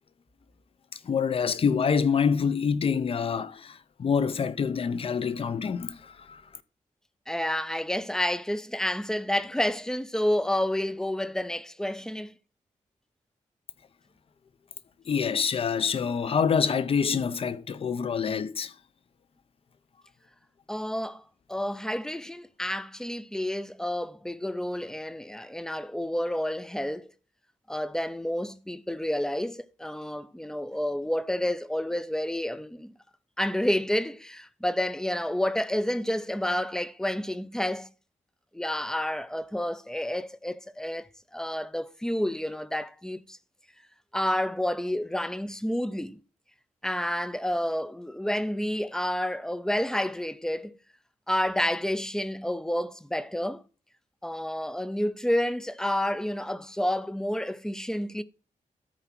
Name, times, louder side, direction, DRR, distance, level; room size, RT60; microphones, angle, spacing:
voice 1, 1.0-6.4 15.1-18.7, left 6 dB, 45° left, 0.7 m, -26 dB
voice 2, 7.3-12.3 20.7-21.2 21.5-27.1 27.7-32.9 33.4-37.9 38.5-43.4 44.1-46.2 46.8-50.8 51.3-53.6 54.2-58.2, left 1 dB, 5° left, 0.5 m, -29 dB
13.5 x 4.6 x 5.9 m
wide cardioid pair, 180°, 14 cm